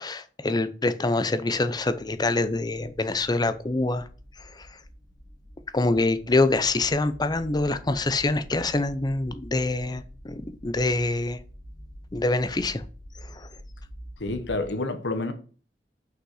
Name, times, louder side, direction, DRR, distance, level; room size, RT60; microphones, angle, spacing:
voice 1, 0.0-4.1 4.4-4.7 5.7-11.4 12.1-12.8 13.2-13.5, left 2 dB, 25° left, 0.6 m, -25 dB
sound 1, 1.8-14.6, equal, 5° left, 2.5 m, -46 dB
voice 2, 14.2-15.3, left 2 dB, 85° left, 1.1 m, -28 dB
6.3 x 5.6 x 4.8 m
head